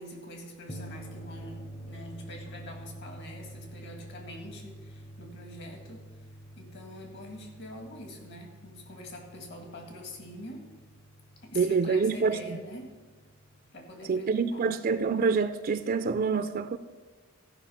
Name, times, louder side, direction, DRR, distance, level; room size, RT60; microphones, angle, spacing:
voice 1, 0.0-6.0 6.6-10.7 11.4-13.0 13.7-14.7, left 1 dB, 55° left, 2.0 m, -45 dB
sound 1, 0.7-13.6, right 1 dB, 20° left, 0.7 m, -47 dB
voice 2, 11.5-12.6 14.1-16.8, right 5 dB, 40° right, 0.4 m, -26 dB
15.0 x 5.4 x 5.8 m
head